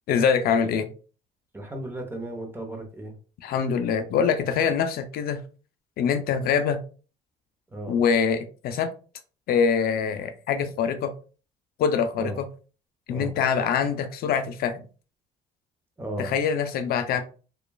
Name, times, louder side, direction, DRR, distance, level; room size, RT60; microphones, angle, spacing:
voice 1, 0.1-0.9 3.4-5.4 6.0-6.8 7.9-8.9 9.5-11.1 11.8-12.5 13.1-14.8 16.2-17.2, left 6 dB, 65° left, 8 dB, 0.4 m, -24 dB
voice 2, 1.5-3.1 7.7-8.0 12.2-12.4 13.1-13.4 16.0-16.3, right 1 dB, 15° right, 2 dB, 0.8 m, -35 dB
2.9 x 2.3 x 2.3 m, 0.37 s
cardioid pair, 110°, 17 cm